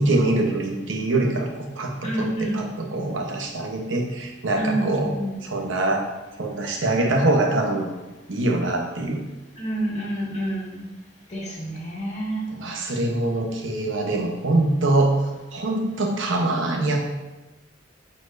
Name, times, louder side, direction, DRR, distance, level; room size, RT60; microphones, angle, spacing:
voice 1, 0.0-5.2 5.4-6.1 6.4-7.9 8.3-9.2 12.5-15.2 15.5-17.0, right 2 dB, 75° right, 1 dB, 0.9 m, -24 dB
voice 2, 2.0-2.7 4.6-5.3 9.6-10.9 11.3-12.5, right 1 dB, 40° left, -4 dB, 1.8 m, -28 dB
9.4 x 4.3 x 2.6 m, 1.1 s
head